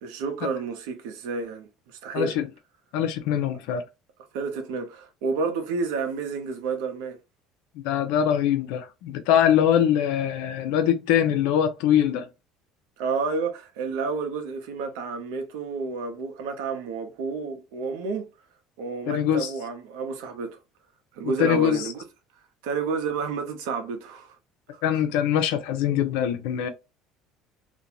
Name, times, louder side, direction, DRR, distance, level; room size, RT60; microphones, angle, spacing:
voice 1, 0.0-2.4 4.3-7.2 13.0-18.3 18.8-20.6 21.1-22.0 22.6-24.4 24.7-25.0, right 4 dB, 90° right, 0.7 m, -30 dB
voice 2, 2.1-2.5 2.9-3.8 7.8-12.3 19.1-19.5 21.4-21.8 24.8-26.7, left 9 dB, 85° left, 0.5 m, -23 dB
2.5 x 2.2 x 2.9 m
cardioid pair, 120°, 0 cm